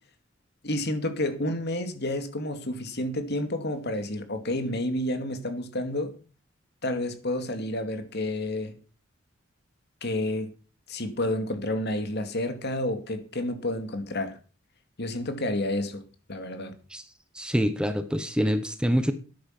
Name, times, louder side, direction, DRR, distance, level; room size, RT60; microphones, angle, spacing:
voice 1, 0.6-6.1 6.8-8.8 10.0-10.5 10.9-14.4 15.0-16.0 16.3-16.7, left 1 dB, 55° left, 2.4 m, -30 dB
voice 2, 17.3-19.1, equal, 5° right, 1.0 m, -25 dB
13.0 x 10.5 x 5.9 m
head